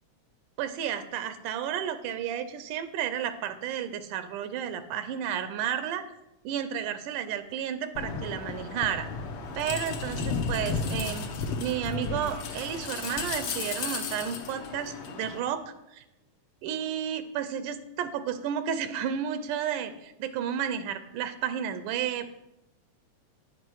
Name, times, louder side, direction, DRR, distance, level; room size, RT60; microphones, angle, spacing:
voice 1, 0.6-6.0 6.4-9.1 9.6-11.3 11.6-15.6 15.9-16.0 16.6-22.3, right 9 dB, 85° right, 11 dB, 2.2 m, -32 dB
sound 1, 8.0-15.4, left 4 dB, 65° left, 1.5 m, -34 dB
9.4 x 7.4 x 4.6 m, 0.89 s
omnidirectional pair, 3.5 m